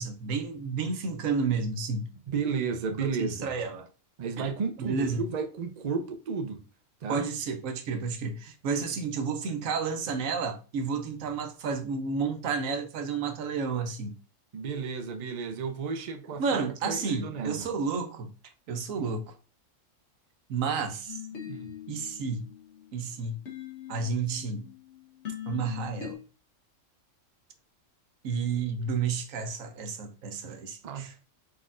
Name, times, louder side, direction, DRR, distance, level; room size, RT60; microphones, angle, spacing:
voice 1, 0.0-2.1 3.0-3.9 4.4-4.5 4.8-5.2 7.1-14.2 16.4-18.3 18.7-19.2 20.5-21.2 21.9-22.5 22.9-23.3 23.9-24.7 25.5-26.2 28.2-31.1, right 5 dB, 80° right, 1.1 m, -31 dB
voice 2, 2.3-3.5 4.2-6.6 7.0-7.3 14.5-17.7 18.9-19.2 21.4-21.7 30.8-31.1, right 5 dB, 45° right, 0.5 m, -33 dB
sound 1, 21.1-26.1, left 10 dB, 60° left, 1.4 m, -42 dB
4.8 x 4.2 x 2.5 m
omnidirectional pair, 1.4 m